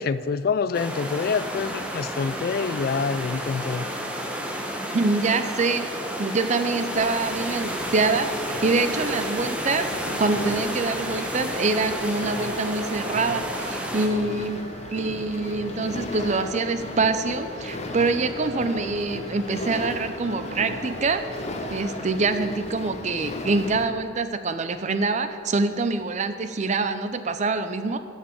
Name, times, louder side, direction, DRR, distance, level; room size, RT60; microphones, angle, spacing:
voice 1, 0.0-3.9, left 5 dB, 50° left, 14 dB, 0.3 m, -26 dB
sound 1, 0.7-14.1, equal, 5° right, 1.0 m, -31 dB
voice 2, 4.9-14.6 14.9-21.4 21.7-28.0, right 3 dB, 40° right, 10 dB, 0.5 m, -25 dB
sound 2, 6.7-23.8, left 2 dB, 35° left, 0.9 m, -36 dB
sound 3, 8.9-22.3, equal, 80° right, 1.9 m, -41 dB
8.4 x 7.3 x 7.5 m, 2.2 s
head